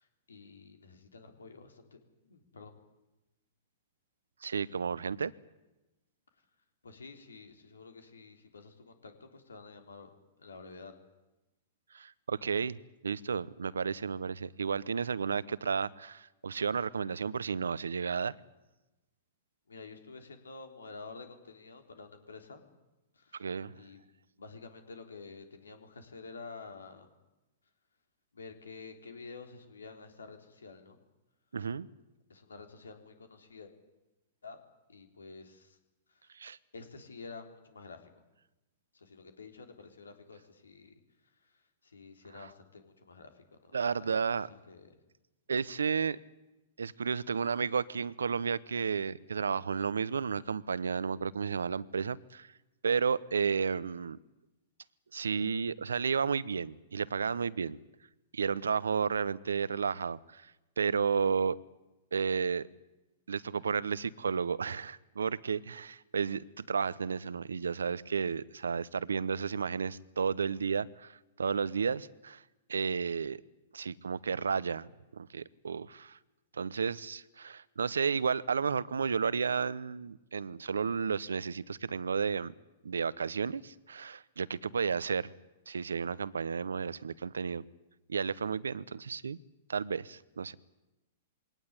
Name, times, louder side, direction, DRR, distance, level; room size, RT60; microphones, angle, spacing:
voice 1, 0.0-2.0 2.3-2.7 6.8-10.9 19.7-22.6 23.1-23.5 23.8-24.0 24.4-27.1 28.3-31.0 32.3-33.7 34.4-34.6 34.9-35.8 36.1-36.4 36.7-38.0 38.9-40.9 41.4-44.2 44.5-45.0, left 4 dB, 90° left, 7 dB, 3.5 m, -50 dB
voice 2, 4.4-5.3 11.9-12.8 13.0-18.3 23.3-23.7 31.5-31.9 36.3-36.6 43.7-44.5 45.5-46.2 46.8-52.5 52.8-54.2 55.1-57.8 58.3-60.5 60.8-61.6 62.1-62.7 63.3-72.4 72.7-73.4 73.7-74.9 75.1-76.2 76.6-82.5 82.8-85.3 85.7-87.6 88.1-89.4 89.7-90.6, right 6 dB, 85° right, 20 dB, 0.8 m, -32 dB
22.0 x 18.5 x 9.8 m, 1.0 s
hypercardioid pair, 115°, 0 cm